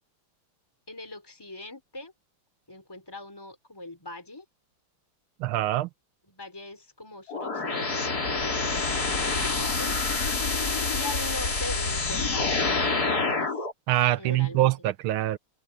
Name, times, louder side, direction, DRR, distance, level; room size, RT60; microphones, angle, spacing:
voice 1, 0.9-2.1 2.7-4.4 6.2-10.0 10.6-13.5 14.2-14.7, left 2 dB, 10° left, 4.3 m, -41 dB
voice 2, 5.4-5.9 13.9-15.4, right 15 dB, 75° right, 1.5 m, -24 dB
sound 1, 7.3-13.7, left 3 dB, 45° left, 4.1 m, -27 dB
omnidirectional pair, 2.4 m